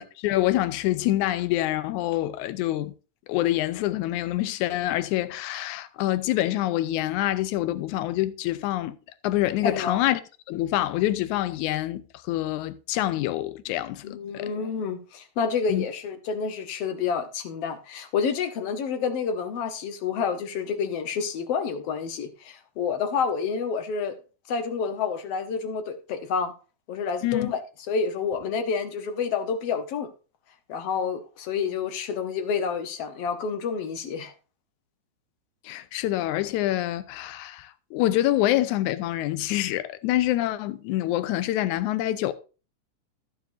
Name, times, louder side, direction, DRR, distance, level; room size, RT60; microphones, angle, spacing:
voice 1, 0.0-2.9 3.3-9.0 9.2-10.2 10.5-14.5 15.7-15.9 27.2-27.5 35.6-42.3, left 15 dB, 85° left, 2.1 m, -26 dB
voice 2, 9.6-10.0 14.0-24.2 24.5-26.5 26.9-27.6 27.9-30.1 30.7-34.3, left 6 dB, 65° left, 1.8 m, -29 dB
14.5 x 7.0 x 2.6 m
omnidirectional pair, 3.5 m